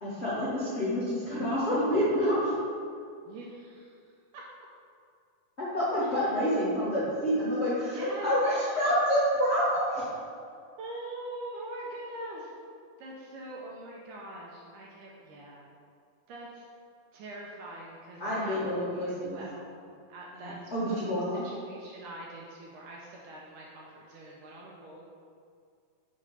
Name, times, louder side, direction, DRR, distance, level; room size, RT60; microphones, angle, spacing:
voice 1, 0.0-2.5 5.6-10.1 18.2-19.4 20.3-21.4, equal, 75° left, -11 dB, 0.6 m, -28 dB
voice 2, 3.3-4.0 4.3-4.4 6.0-6.4 7.9-8.3 10.8-12.5 13.0-15.7 16.3-16.7 17.1-19.7 20.1-20.6 20.9-25.0, right 1 dB, 80° right, -3 dB, 1.9 m, -43 dB
7.6 x 3.2 x 5.4 m, 2.3 s
omnidirectional pair, 4.2 m